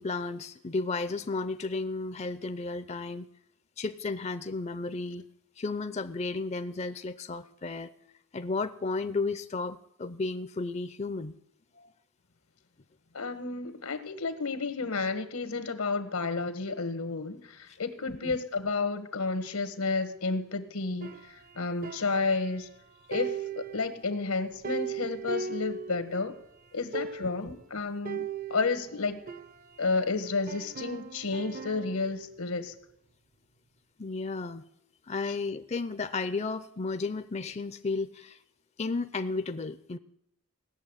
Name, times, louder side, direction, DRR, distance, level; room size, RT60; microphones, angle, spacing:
voice 1, 0.0-3.3 3.8-5.3 5.6-7.9 8.3-11.4 11.8-11.9 18.1-18.4 27.4-27.5 34.0-34.6 35.1-38.4 38.8-40.0, left 3 dB, 30° left, 11 dB, 0.5 m, -33 dB
voice 2, 13.1-22.7 23.1-26.3 26.7-29.2 29.8-32.7 35.3-35.4, left 4 dB, 85° left, 9 dB, 1.5 m, -31 dB
sound 1, 21.0-22.8 23.1-26.4 26.7-26.8 26.9-27.5 28.0-30.0 30.5-32.1, right 6 dB, 40° right, 0.6 m, -39 dB
17.5 x 7.0 x 9.7 m, 0.75 s
head